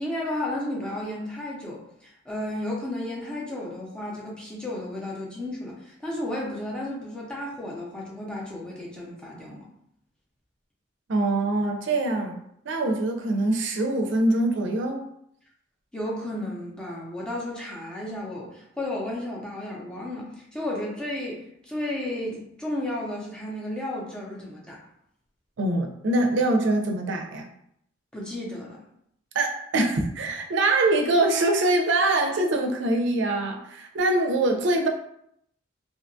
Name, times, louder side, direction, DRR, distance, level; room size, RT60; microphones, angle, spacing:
voice 1, 0.0-9.7 15.9-24.8 28.1-28.8, left 1 dB, 5° left, -4 dB, 0.5 m, -33 dB
voice 2, 11.1-12.4 12.7-15.0 25.6-27.5 29.3-34.9, right 2 dB, 65° right, 3 dB, 0.4 m, -24 dB
2.7 x 2.2 x 2.5 m, 0.73 s
head